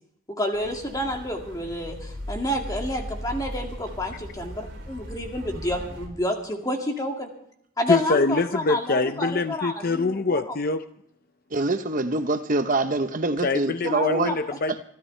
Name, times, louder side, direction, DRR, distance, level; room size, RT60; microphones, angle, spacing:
voice 1, 0.3-7.3 7.8-10.4 13.9-14.4, left 1 dB, 15° left, 2 dB, 2.2 m, -29 dB
sound 1, 0.5-6.1, equal, 55° right, 4.3 m, -38 dB
voice 2, 7.9-10.8 13.4-14.8, left 3 dB, 45° left, 10 dB, 0.6 m, -24 dB
voice 3, 11.5-14.3, right 2 dB, 40° right, 8 dB, 0.9 m, -25 dB
26.5 x 12.5 x 3.3 m, 0.72 s
head